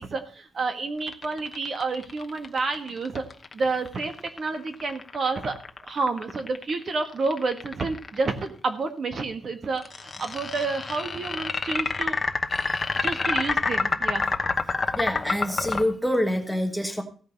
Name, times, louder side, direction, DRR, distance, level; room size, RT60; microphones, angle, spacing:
voice 1, 0.0-3.2 3.5-5.6 5.9-12.2 13.0-14.3, right 3 dB, 45° right, 7 dB, 1.6 m, -29 dB
sound 1, 1.0-8.3 9.8-15.8, left 4 dB, 30° left, 1.0 m, -28 dB
voice 2, 14.9-17.0, equal, ahead, 4 dB, 1.6 m, -26 dB
16.0 x 5.3 x 6.5 m, 0.41 s
cardioid pair, 130°, 0 cm